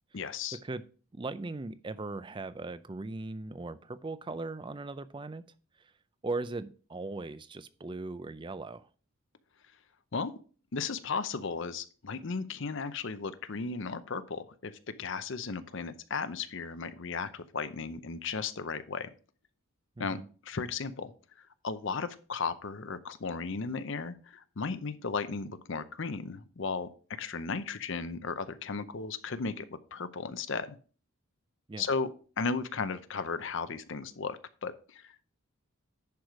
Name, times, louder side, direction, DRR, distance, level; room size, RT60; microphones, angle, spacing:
voice 1, 0.1-0.6 10.1-10.3 10.7-19.1 20.0-21.1 21.4-30.8 31.8-32.1 32.4-35.2, left 4 dB, 60° left, 12 dB, 0.6 m, -35 dB
voice 2, 1.1-5.4 5.8-5.9 6.2-8.9 20.0-20.3 31.7-31.9, right 3 dB, 20° right, 14 dB, 0.4 m, -38 dB
10.5 x 4.8 x 4.7 m, 0.39 s
head